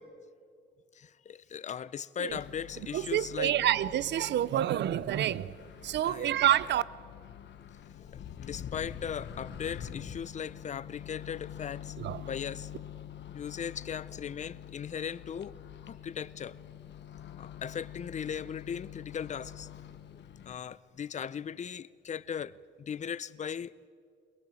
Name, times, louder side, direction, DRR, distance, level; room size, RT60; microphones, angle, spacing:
voice 1, 0.9-3.5 6.0-6.4 8.0-12.7 13.3-15.5 15.8-16.6 17.4-19.7 20.1-23.7, left 8 dB, 40° left, 0.6 m, -38 dB
Microwave oven, 2.3-20.6, left 10 dB, 65° left, 1.2 m, -46 dB
voice 2, 2.9-5.5 5.8-6.8 12.0-12.2, right 12 dB, 65° right, 0.6 m, -28 dB
22.0 x 21.5 x 7.7 m
cardioid pair, 130°, 20 cm